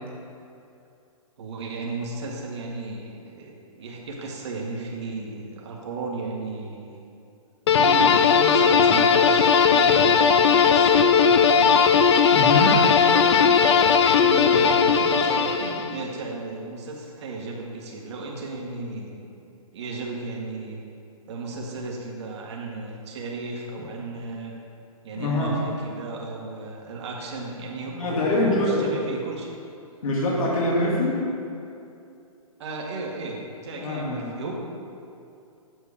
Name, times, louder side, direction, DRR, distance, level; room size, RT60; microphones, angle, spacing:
voice 1, 1.4-6.9 7.7-11.8 12.8-19.4 19.7-20.8 21.3-24.5 25.0-29.5 32.6-34.5, right 3 dB, 50° right, -1 dB, 1.9 m, -34 dB
sound 1, 7.7-16.0, left 6 dB, 50° left, 0.6 m, -18 dB
voice 2, 12.3-12.8 25.1-25.6 27.9-29.0 30.0-31.2 33.7-34.3, left 1 dB, 70° left, -4 dB, 2.4 m, -24 dB
8.2 x 6.3 x 6.6 m, 2.6 s
hypercardioid pair, 160°, 18 cm